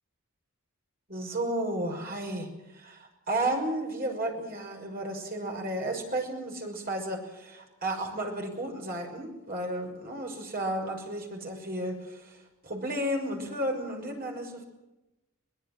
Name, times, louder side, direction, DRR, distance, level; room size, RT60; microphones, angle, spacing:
voice 1, 1.1-2.5 2.7-12.3 12.6-14.6, right 1 dB, 45° right, 2 dB, 6.0 m, -33 dB
23.0 x 20.5 x 7.6 m, 0.99 s
head